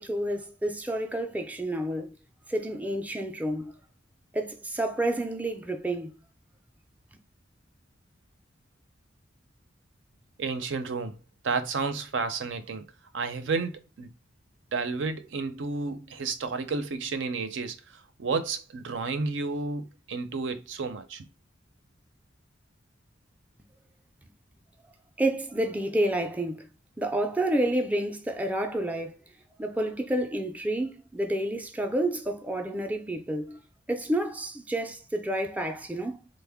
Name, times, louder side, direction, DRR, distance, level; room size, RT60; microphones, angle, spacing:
voice 1, 0.0-2.2 2.5-3.8 4.3-6.2 25.2-26.7 27.0-29.2 29.6-33.6 33.9-36.2, right 1 dB, 10° right, 0.4 m, -29 dB
voice 2, 10.4-11.2 11.4-12.9 13.1-14.1 14.7-21.3, right 4 dB, 75° right, 0.5 m, -31 dB
3.4 x 2.1 x 3.5 m
head